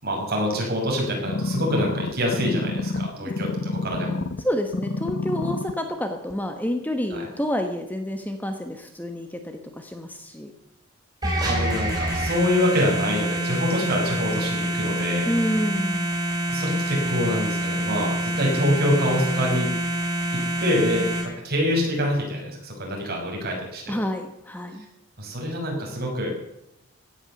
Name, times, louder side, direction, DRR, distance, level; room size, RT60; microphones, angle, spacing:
voice 1, 0.0-4.2 7.2-7.3 11.4-15.3 16.5-19.7 20.3-23.9 25.2-26.3, equal, 45° right, 0 dB, 5.7 m, -25 dB
sound 1, 1.3-4.4 4.7-5.7 6.3-6.4, left 3 dB, 55° left, 1.0 m, -28 dB
voice 2, 4.4-10.5 11.2-11.5 15.2-16.2 23.9-24.9, equal, 10° left, 6 dB, 1.1 m, -29 dB
sound 2, 11.2-21.2, right 1 dB, 20° right, 4.8 m, -26 dB
16.5 x 10.5 x 7.0 m, 0.85 s
head